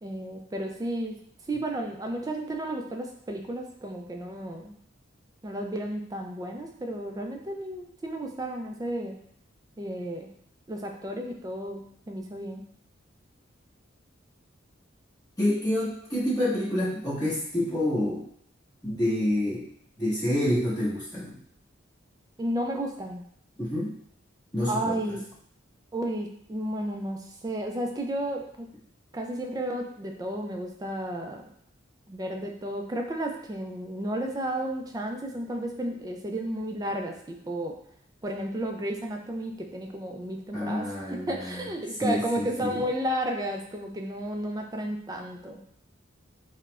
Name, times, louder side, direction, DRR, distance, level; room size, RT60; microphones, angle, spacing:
voice 1, 0.0-1.2 1.5-4.7 5.4-9.2 9.8-10.3 10.7-12.6 22.4-23.2 24.7-25.3 25.9-28.7 29.1-31.4 32.1-37.8 38.2-45.6, right 1 dB, 20° right, 3 dB, 0.3 m, -33 dB
voice 2, 15.4-18.2 18.8-19.6 20.0-21.4 23.6-23.9 24.5-24.9 40.5-41.6 42.0-42.8, left 1 dB, 20° left, -10 dB, 1.4 m, -28 dB
4.6 x 2.1 x 2.4 m, 0.69 s
head